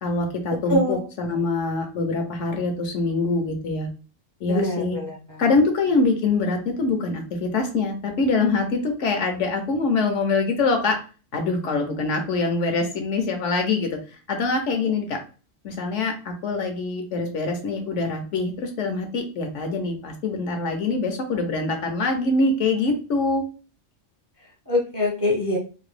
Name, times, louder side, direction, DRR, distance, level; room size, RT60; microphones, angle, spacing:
voice 1, 0.0-3.9 4.4-5.0 5.4-11.0 11.3-13.9 14.3-15.2 15.6-23.4, left 3 dB, 70° left, 4 dB, 1.0 m, -24 dB
voice 2, 0.7-1.0 4.4-5.4 14.8-14.9 24.7-25.6, left 1 dB, 25° right, -3 dB, 0.5 m, -24 dB
2.9 x 2.6 x 3.1 m, 0.36 s
omnidirectional pair, 1.3 m